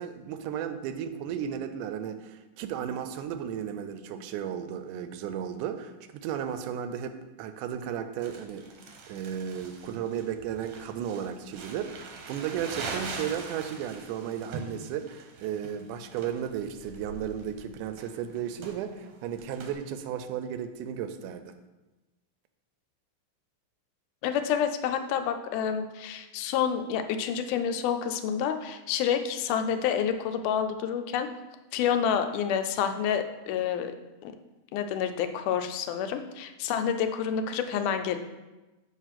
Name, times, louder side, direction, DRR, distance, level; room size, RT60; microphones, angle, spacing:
voice 1, 0.0-8.6 9.1-21.5, right 9 dB, 85° right, 9 dB, 2.1 m, -34 dB
Crumpling crinkling, 8.2-19.7, right 4 dB, 70° right, 1.5 m, -42 dB
voice 2, 24.2-31.3 31.7-33.9 34.2-34.3 34.7-38.2, left 8 dB, 85° left, 8 dB, 2.0 m, -28 dB
7.2 x 3.0 x 5.8 m, 1.1 s
omnidirectional pair, 3.5 m